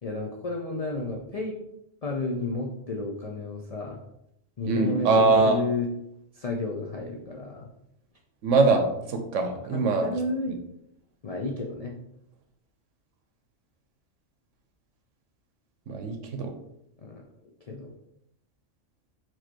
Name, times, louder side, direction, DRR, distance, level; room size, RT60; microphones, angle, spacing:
voice 1, 0.0-1.6 2.0-4.0 4.6-5.9 6.3-7.7 9.7-10.5 11.2-11.9 17.0-17.2 17.7-17.9, left 2 dB, 60° left, 0 dB, 0.4 m, -32 dB
voice 2, 4.7-5.6 8.4-10.1 15.9-16.5, right 3 dB, 75° right, 5 dB, 1.1 m, -22 dB
4.5 x 2.7 x 4.4 m, 0.79 s
omnidirectional pair, 1.3 m